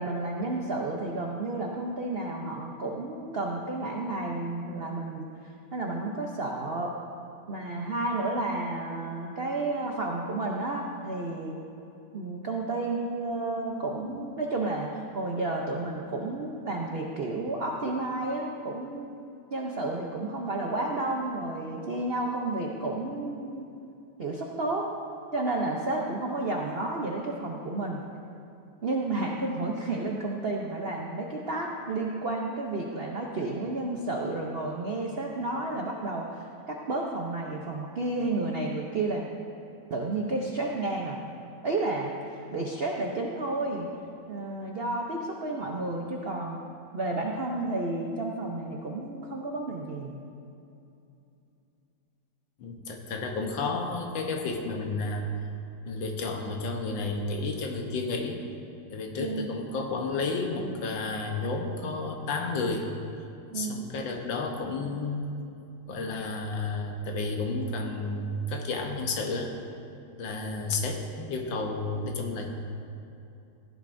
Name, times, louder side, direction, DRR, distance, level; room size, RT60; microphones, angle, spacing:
voice 1, 0.0-6.9 7.5-11.6 12.1-19.2 19.5-23.7 24.2-24.9 25.3-28.0 28.8-39.2 39.9-41.2 41.6-43.9 44.3-46.6 46.9-50.2 59.2-59.5 63.5-63.8, right 2 dB, 60° right, 0 dB, 0.6 m, -31 dB
voice 2, 52.6-55.3 55.9-58.4 58.9-62.9 63.5-65.3 65.9-69.5 70.2-72.5, left 3 dB, 75° left, 2 dB, 1.7 m, -31 dB
16.0 x 10.5 x 2.6 m, 2.7 s
omnidirectional pair, 2.1 m